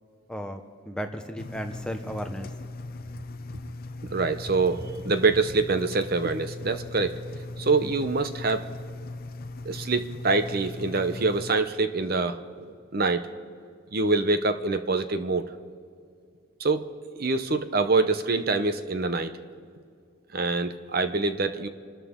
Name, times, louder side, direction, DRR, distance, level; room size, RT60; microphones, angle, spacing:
voice 1, 0.3-2.5, equal, 5° left, 5 dB, 0.8 m, -35 dB
Engine, 1.4-11.5, left 2 dB, 45° left, 0.6 m, -39 dB
voice 2, 4.0-7.2 7.6-8.7 9.6-13.3 13.9-15.6 16.6-16.9 17.2-19.4 20.3-21.7, right 3 dB, 45° right, 9 dB, 0.8 m, -25 dB
28.0 x 13.0 x 3.7 m, 2.2 s
head